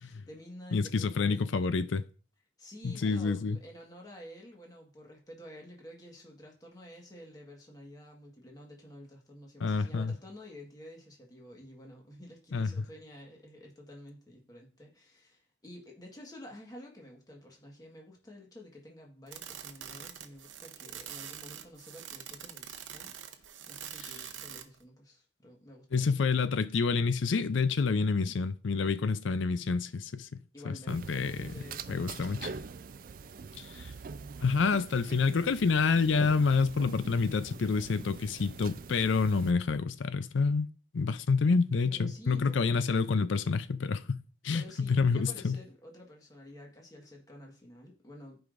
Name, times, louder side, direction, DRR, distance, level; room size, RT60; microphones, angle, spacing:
voice 1, 0.0-1.4 2.6-26.3 26.6-26.7 30.5-32.6 41.9-42.8 44.5-48.4, left 1 dB, 20° left, 1.5 m, -50 dB
voice 2, 0.7-2.1 2.8-3.6 9.6-10.1 12.5-12.7 25.9-30.4 30.6-31.5 31.9-32.5 33.6-33.9 34.4-40.7 40.9-45.6, left 4 dB, 75° left, 0.5 m, -28 dB
sound 1, 19.3-24.8, right 9 dB, 75° right, 0.8 m, -44 dB
sound 2, 30.9-39.5, right 5 dB, 45° right, 0.4 m, -44 dB
14.0 x 5.0 x 2.6 m
head